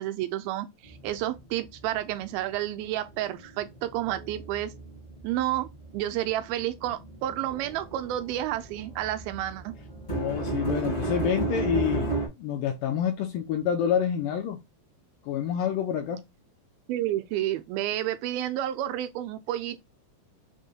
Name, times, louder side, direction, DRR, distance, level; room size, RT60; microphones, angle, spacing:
voice 1, 0.0-4.7 5.2-5.7 5.9-9.7 16.9-19.8, right 13 dB, 80° right, 2.3 m, -30 dB
sound 1, 0.8-2.5 2.8-12.3, right 3 dB, 40° left, 0.7 m, -34 dB
voice 2, 10.1-14.6 15.2-16.2, left 9 dB, 80° left, 2.0 m, -28 dB
6.1 x 2.2 x 2.7 m
omnidirectional pair, 4.3 m